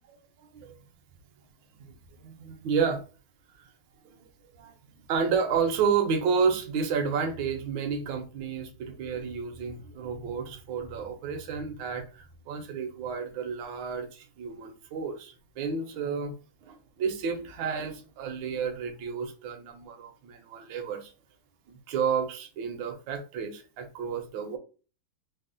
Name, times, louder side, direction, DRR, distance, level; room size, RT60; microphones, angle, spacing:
voice 1, 2.2-3.0 4.0-4.3 4.6-16.3 16.6-21.1 21.7-24.6, right 6 dB, 75° right, 1.3 m, -31 dB
4.1 x 2.0 x 2.5 m
omnidirectional pair, 2.2 m